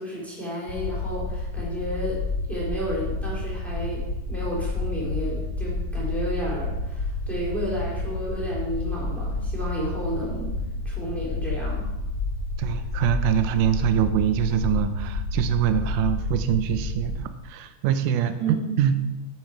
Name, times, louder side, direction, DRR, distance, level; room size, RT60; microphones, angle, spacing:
voice 1, 0.0-2.2 2.5-10.6 10.8-11.9 18.4-18.8, right 1 dB, ahead, -7 dB, 3.6 m, -32 dB
sound 1, 0.7-17.2, left 2 dB, 75° left, 1.2 m, -30 dB
voice 2, 12.6-19.0, right 10 dB, 85° right, 9 dB, 2.2 m, -24 dB
10.5 x 7.6 x 4.6 m, 0.96 s
omnidirectional pair, 3.7 m